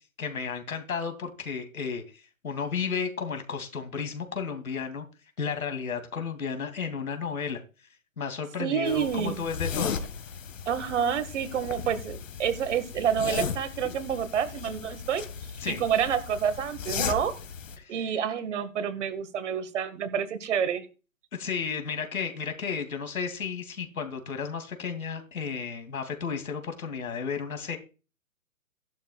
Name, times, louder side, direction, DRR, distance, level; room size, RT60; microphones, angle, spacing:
voice 1, 0.2-5.1 5.4-7.6 8.2-10.0 15.6-15.8 17.8-18.2 21.3-27.8, left 6 dB, 80° left, 7 dB, 2.8 m, -33 dB
voice 2, 8.6-9.4 10.7-15.2 15.7-17.3 17.9-20.9, right 8 dB, 55° right, 10 dB, 1.9 m, -28 dB
sound 1, 8.9-17.8, left 6 dB, 65° left, 1.9 m, -36 dB
15.0 x 11.5 x 2.4 m, 0.33 s
hypercardioid pair, 140°, 41 cm